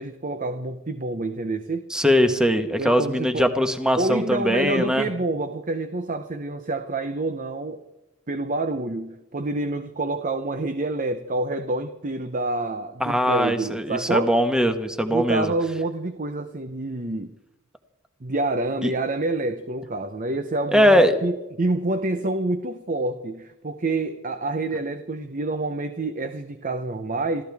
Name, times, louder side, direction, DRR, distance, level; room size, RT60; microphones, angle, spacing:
voice 1, 0.0-1.9 2.8-3.5 4.0-7.8 8.3-14.4 15.1-17.4 18.2-27.4, right 2 dB, 40° right, 8 dB, 0.9 m, -27 dB
voice 2, 1.9-5.1 13.0-15.5 18.8-18.9 20.7-21.2, equal, 5° right, 7 dB, 1.3 m, -21 dB
27.0 x 14.5 x 3.6 m, 0.99 s
head